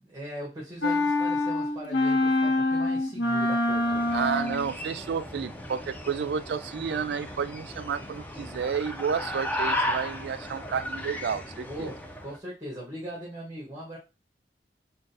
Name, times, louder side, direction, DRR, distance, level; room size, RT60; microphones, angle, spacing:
voice 1, 0.0-4.0 11.6-14.0, right 1 dB, 20° right, 1.3 m, -40 dB
sound 1, 0.8-4.7, left 2 dB, 85° left, 0.7 m, -25 dB
sound 2, 3.7-12.4, left 1 dB, 10° left, 0.4 m, -35 dB
voice 2, 4.1-11.9, right 6 dB, 70° right, 0.3 m, -31 dB
3.7 x 2.3 x 4.0 m
head